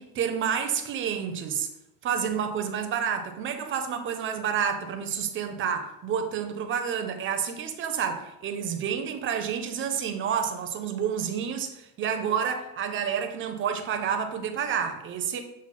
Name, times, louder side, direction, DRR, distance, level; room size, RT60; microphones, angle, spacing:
voice 1, 0.0-1.7 2.0-15.4, right 7 dB, 30° right, 6 dB, 0.4 m, -29 dB
6.0 x 2.0 x 4.1 m, 0.87 s
cardioid pair, 155°, 40 cm